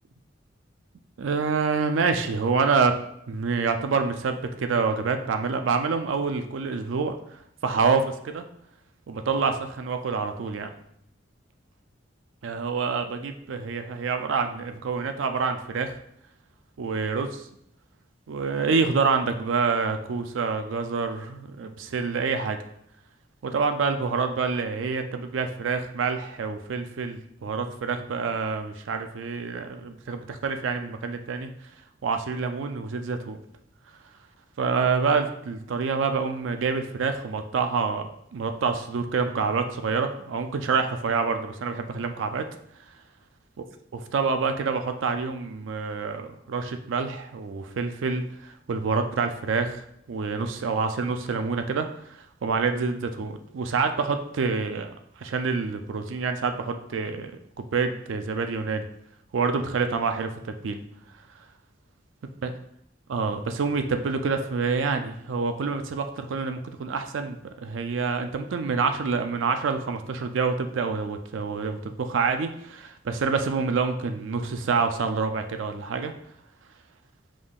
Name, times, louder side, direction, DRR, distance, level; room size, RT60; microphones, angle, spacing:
voice 1, 1.2-3.0 3.3-7.2 7.6-8.4 9.1-10.7 12.4-15.9 16.8-17.5 18.3-22.6 23.4-31.5 32.0-33.4 34.6-42.5 43.9-49.8 50.1-54.9 55.2-57.3 57.6-58.9 59.3-60.8 62.4-62.5 63.1-76.1, right 4 dB, 75° right, 7 dB, 0.4 m, -27 dB
5.1 x 3.7 x 2.4 m, 0.73 s
head